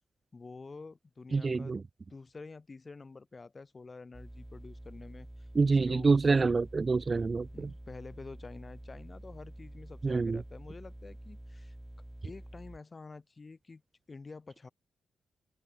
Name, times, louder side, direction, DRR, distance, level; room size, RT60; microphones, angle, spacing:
voice 1, 0.3-1.8 2.1-6.4 7.5-11.8 12.2-13.8 14.1-14.7, left 3 dB, 30° left, 3.3 m, -48 dB
voice 2, 1.3-1.8 5.5-7.7 10.0-10.4, right 4 dB, 35° right, 0.5 m, -27 dB
sound 1, 4.1-12.8, right 1 dB, 10° right, 2.6 m, -48 dB
open air
cardioid pair, 90°, 0 cm